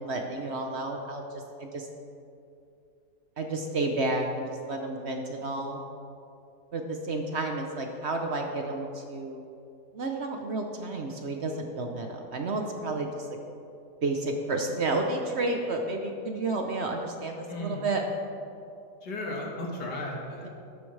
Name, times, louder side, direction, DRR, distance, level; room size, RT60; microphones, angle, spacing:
voice 1, 0.0-1.9 3.4-5.8 6.7-9.5 9.9-13.3 14.0-18.0, right 2 dB, 50° right, 3 dB, 1.0 m, -31 dB
voice 2, 17.5-17.8 19.0-20.5, left 1 dB, 90° left, -1 dB, 2.3 m, -35 dB
13.5 x 10.5 x 3.3 m, 2.6 s
omnidirectional pair, 1.7 m